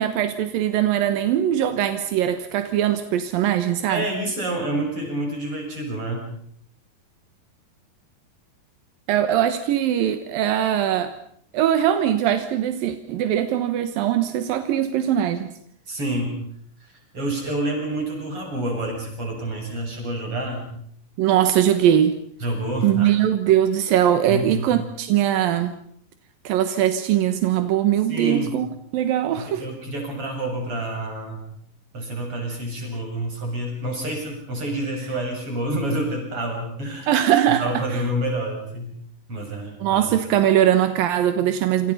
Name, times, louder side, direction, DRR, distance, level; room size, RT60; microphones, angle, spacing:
voice 1, 0.0-4.1 9.1-11.1 11.5-15.5 21.2-22.2 22.8-25.7 26.4-28.7 28.9-29.6 37.1-37.8 39.8-41.9, right 11 dB, 85° right, 9 dB, 3.0 m, -21 dB
voice 2, 3.9-6.3 15.9-16.4 16.8-20.7 22.4-23.1 24.3-24.7 28.1-28.6 29.4-31.4 31.9-37.1 37.5-38.9 39.3-40.2, right 1 dB, 40° right, 1 dB, 8.3 m, -28 dB
28.0 x 27.0 x 5.6 m, 0.66 s
omnidirectional pair, 4.1 m